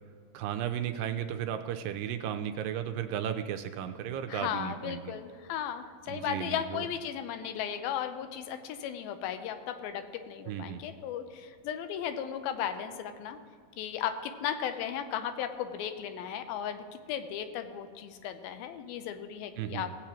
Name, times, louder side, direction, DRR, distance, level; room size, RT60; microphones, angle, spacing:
voice 1, 0.3-5.1 6.1-6.9 10.5-10.8 19.6-19.8, right 9 dB, 80° right, 7 dB, 2.0 m, -34 dB
voice 2, 4.3-13.4 13.8-19.9, left 9 dB, 80° left, 9 dB, 2.5 m, -36 dB
17.5 x 8.5 x 3.0 m, 2.1 s
omnidirectional pair, 4.3 m